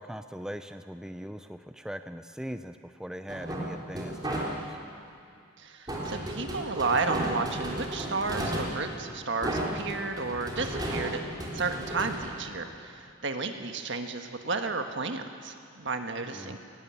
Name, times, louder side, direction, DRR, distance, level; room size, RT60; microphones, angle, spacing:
voice 1, 0.0-4.8 16.3-16.6, equal, 5° right, 9 dB, 0.5 m, -40 dB
sound 1, 3.3-4.9 5.9-13.0, right 1 dB, 20° right, 3.6 m, -34 dB
voice 2, 5.6-11.2 11.5-16.6, right 3 dB, 65° right, 5 dB, 1.6 m, -32 dB
18.0 x 16.5 x 9.6 m, 2.5 s
head